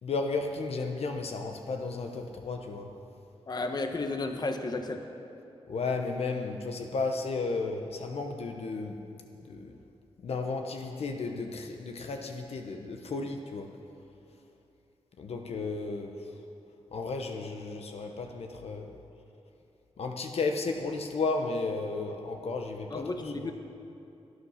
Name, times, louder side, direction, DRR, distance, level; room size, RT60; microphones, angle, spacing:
voice 1, 0.0-2.9 5.7-9.0 9.5-9.7 10.2-13.7 15.2-16.1 16.9-19.0 20.0-23.5, left 3 dB, 70° left, 4 dB, 1.0 m, -33 dB
voice 2, 3.5-5.0 22.9-23.5, left 2 dB, 40° left, 5 dB, 1.1 m, -33 dB
17.5 x 10.0 x 5.8 m, 2.8 s
cardioid pair, 85°, 11 cm